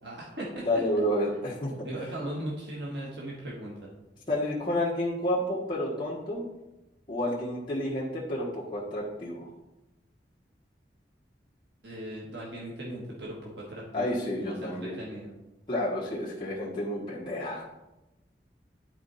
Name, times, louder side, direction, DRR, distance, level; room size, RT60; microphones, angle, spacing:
voice 1, 0.0-0.7 1.8-3.9 11.8-15.3, right 1 dB, 80° right, -4 dB, 1.5 m, -38 dB
voice 2, 0.6-1.9 4.3-6.4 7.1-9.5 13.9-15.0 15.7-17.7, left 1 dB, 25° left, -7 dB, 1.4 m, -30 dB
11.0 x 4.4 x 4.1 m, 0.99 s
head